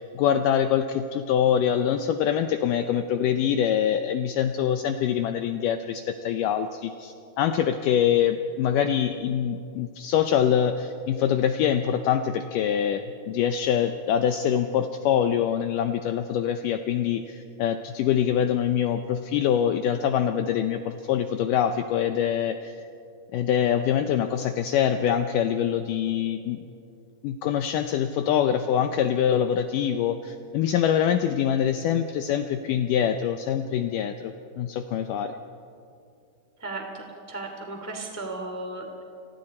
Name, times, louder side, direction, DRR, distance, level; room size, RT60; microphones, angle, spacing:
voice 1, 0.1-22.8 23.3-26.6 27.2-35.4, left 9 dB, 85° left, 8 dB, 1.9 m, -24 dB
voice 2, 36.6-39.0, right 2 dB, 5° left, 2 dB, 1.6 m, -35 dB
29.5 x 23.0 x 4.3 m, 2.5 s
omnidirectional pair, 4.7 m